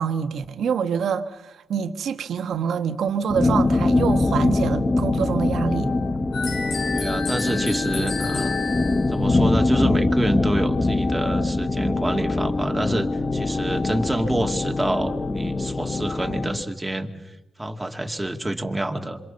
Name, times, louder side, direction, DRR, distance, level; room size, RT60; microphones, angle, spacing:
voice 1, 0.0-5.9, right 7 dB, 80° right, 1.5 m, -26 dB
sound 1, 3.3-16.6, left 2 dB, 30° left, 1.1 m, -23 dB
sound 2, 6.3-9.2, left 4 dB, 85° left, 4.0 m, -31 dB
voice 2, 6.9-8.6 9.1-19.2, right 1 dB, 15° right, 2.5 m, -27 dB
27.0 x 25.5 x 7.0 m
cardioid pair, 80°, 0 cm